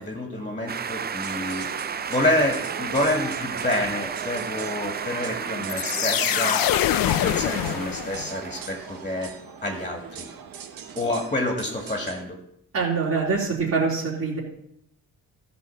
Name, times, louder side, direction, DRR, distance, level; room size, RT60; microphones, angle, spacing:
voice 1, 0.0-1.7 2.1-9.3 9.6-10.3 11.0-12.4, left 1 dB, 20° left, 2 dB, 2.0 m, -28 dB
sound 1, 0.7-9.0, right 7 dB, 30° right, 0.4 m, -33 dB
sound 2, 1.2-12.2, right 8 dB, 80° right, 1.3 m, -39 dB
sound 3, 5.7-8.5, left 14 dB, 80° left, 0.5 m, -24 dB
voice 2, 12.7-14.4, right 4 dB, 50° right, -8 dB, 3.7 m, -24 dB
14.5 x 5.4 x 7.1 m, 0.74 s
cardioid pair, 105°, 34 cm